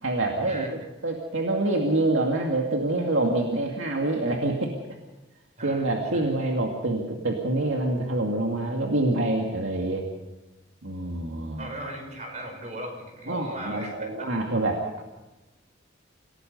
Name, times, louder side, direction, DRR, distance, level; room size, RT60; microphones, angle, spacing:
voice 1, 0.0-4.7 5.6-10.1 10.8-11.7 13.3-15.0, right 2 dB, 85° right, 1 dB, 2.3 m, -26 dB
voice 2, 11.6-14.1, right 1 dB, 35° right, 3 dB, 5.5 m, -37 dB
27.0 x 18.0 x 5.5 m, 1.1 s
head